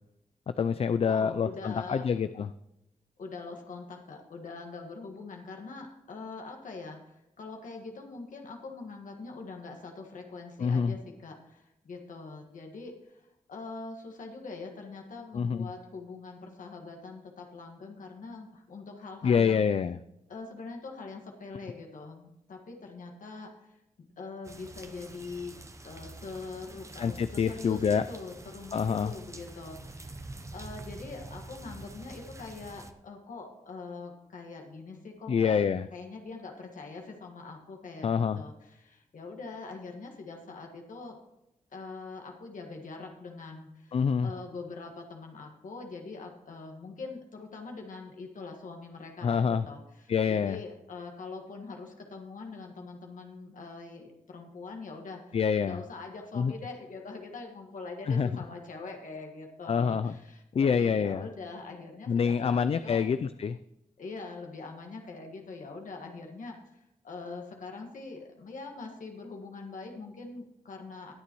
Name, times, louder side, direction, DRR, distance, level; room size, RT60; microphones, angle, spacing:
voice 1, 0.5-2.5 10.6-10.9 15.3-15.6 19.2-20.0 27.0-28.0 28.7-29.1 35.3-35.9 38.0-38.4 43.9-44.3 49.2-49.6 50.1-50.6 55.3-55.8 56.4-56.5 58.1-58.3 59.7-60.1 60.5-61.3 62.1-63.6, left 6 dB, 45° left, 12 dB, 0.4 m, -26 dB
voice 2, 1.0-2.1 3.2-19.7 20.3-25.5 25.8-35.6 35.9-41.2 41.7-63.1 64.0-71.1, left 3 dB, 70° left, 2 dB, 1.6 m, -43 dB
sound 1, 24.4-32.9, right 2 dB, 20° right, 0.8 m, -46 dB
20.5 x 6.9 x 3.0 m, 0.84 s
wide cardioid pair, 95°, 14 cm